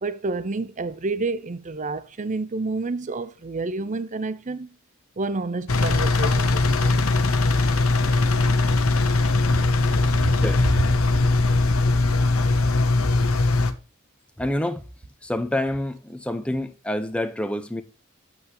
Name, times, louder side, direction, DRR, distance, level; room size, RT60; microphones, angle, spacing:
voice 1, 0.0-4.7 5.2-6.4 6.7-7.0, right 3 dB, 35° right, 0.6 m, -29 dB
Engine, 5.7-13.7, left 3 dB, 80° left, 1.1 m, -20 dB
voice 2, 14.4-14.8 15.2-17.8, left 1 dB, 5° left, 0.9 m, -28 dB
8.4 x 8.0 x 3.0 m
head